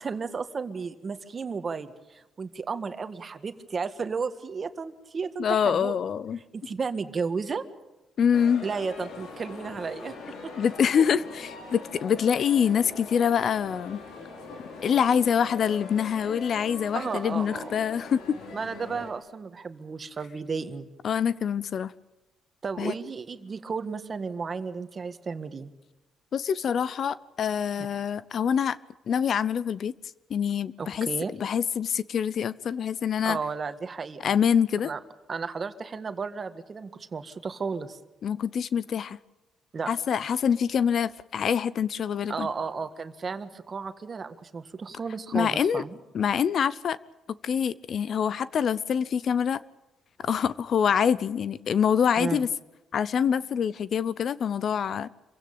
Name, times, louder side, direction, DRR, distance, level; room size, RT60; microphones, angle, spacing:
voice 1, 0.0-6.0 6.5-7.6 8.6-10.1 10.4-10.5 16.9-17.7 18.5-20.9 22.6-25.7 27.8-27.9 30.8-31.3 33.2-34.3 34.8-35.0 35.3-38.0 39.7-39.9 42.3-45.9 52.2-52.4, right 5 dB, 40° right, 1.7 m, -33 dB
voice 2, 5.4-6.4 8.2-8.7 10.6-14.0 14.8-18.2 21.0-21.9 22.8-22.9 26.3-28.8 29.1-29.9 30.3-31.1 31.4-33.4 34.2-34.9 38.2-39.2 39.9-42.5 45.3-45.8 46.1-47.0 47.4-49.6 50.2-52.5 52.9-55.1, left 7 dB, 60° left, 0.7 m, -25 dB
sound 1, 8.3-19.1, left 4 dB, 85° left, 4.4 m, -42 dB
26.5 x 16.0 x 8.8 m
cardioid pair, 90°, 0 cm